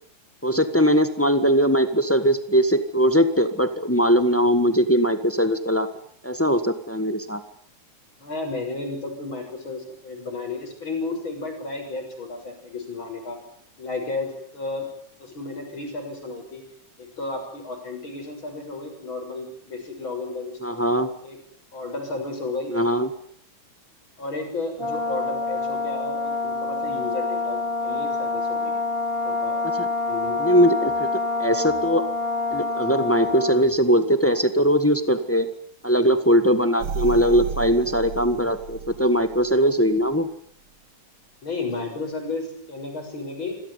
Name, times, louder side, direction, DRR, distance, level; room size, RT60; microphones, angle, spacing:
voice 1, 0.4-5.9 6.2-7.4 20.6-21.1 22.7-23.1 30.4-31.1 31.4-32.1 32.5-35.5 35.8-40.3, equal, 15° left, 10 dB, 0.5 m, -20 dB
voice 2, 8.2-13.4 13.8-14.9 15.2-16.6 17.0-20.7 21.2-21.4 21.7-22.7 24.2-28.7 29.2-29.6 30.1-30.5 41.4-43.5, left 3 dB, 40° left, 4 dB, 7.4 m, -33 dB
Brass instrument, 24.8-33.7, left 3 dB, 10° right, 5.6 m, -26 dB
sound 1, 36.8-39.6 40.1-40.2, right 5 dB, 55° right, 2.2 m, -33 dB
26.0 x 17.0 x 9.7 m, 0.65 s
omnidirectional pair, 3.4 m